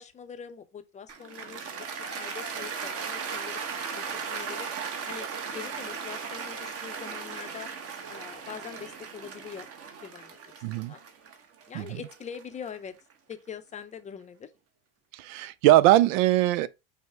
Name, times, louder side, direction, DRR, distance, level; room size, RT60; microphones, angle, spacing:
voice 1, 0.0-1.7 2.2-3.6 4.0-4.7 5.1-5.3 5.5-7.7 8.1-9.7 10.0-10.4 10.7-11.0 11.7-12.9 13.3-14.5, left 7 dB, 20° left, 0.5 m, -43 dB
Cheering / Applause, 1.1-13.3, right 6 dB, 35° right, 0.9 m, -37 dB
voice 2, 10.6-10.9 11.7-12.0 15.1-16.7, right 15 dB, 80° right, 0.5 m, -21 dB
5.6 x 2.1 x 4.5 m
supercardioid pair, 115°, 39 cm